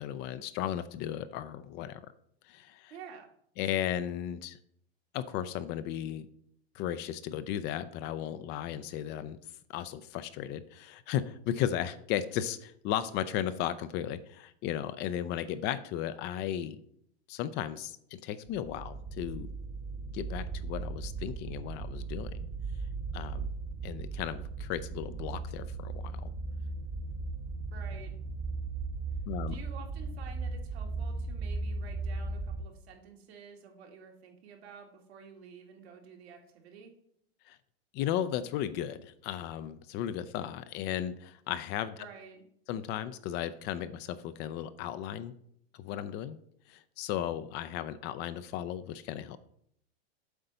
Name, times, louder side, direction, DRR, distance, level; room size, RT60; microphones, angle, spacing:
voice 1, 0.0-2.0 2.4-2.9 3.6-4.6 5.1-6.3 6.7-9.4 9.7-16.8 17.3-19.5 20.1-22.5 23.1-23.5 23.8-26.3 29.3-29.6 37.5-37.6 37.9-42.1 42.7-45.3 45.8-46.4 46.7-49.4, left 11 dB, 35° left, 13 dB, 0.4 m, -35 dB
voice 2, 2.9-3.3 27.7-28.2 29.5-36.9 42.0-42.4, right 6 dB, 75° right, 1 dB, 2.1 m, -50 dB
sound 1, 18.5-32.6, right 3 dB, 30° right, 1.1 m, -37 dB
7.9 x 3.9 x 5.5 m, 0.68 s
hypercardioid pair, 125°, 32 cm